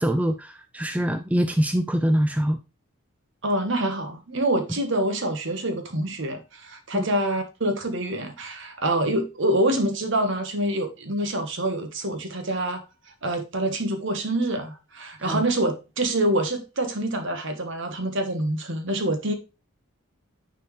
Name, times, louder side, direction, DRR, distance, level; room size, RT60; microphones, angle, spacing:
voice 1, 0.0-2.6 6.9-7.1 15.2-15.4, equal, 5° right, 0.4 m, -24 dB
voice 2, 3.4-12.8 13.2-19.3, right 1 dB, 60° right, 1.3 m, -26 dB
9.5 x 4.5 x 3.2 m
head